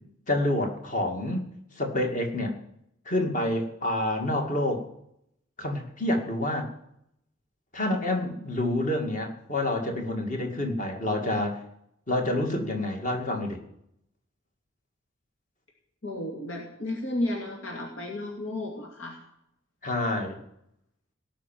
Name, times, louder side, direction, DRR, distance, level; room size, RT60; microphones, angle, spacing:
voice 1, 0.3-1.5 1.8-2.5 3.1-4.8 5.6-6.7 7.7-11.6 12.1-13.6 19.8-20.4, left 1 dB, 40° left, 3 dB, 2.2 m, -28 dB
voice 2, 16.0-19.2, left 1 dB, 85° left, 0 dB, 2.4 m, -33 dB
17.5 x 6.0 x 9.1 m, 0.77 s
head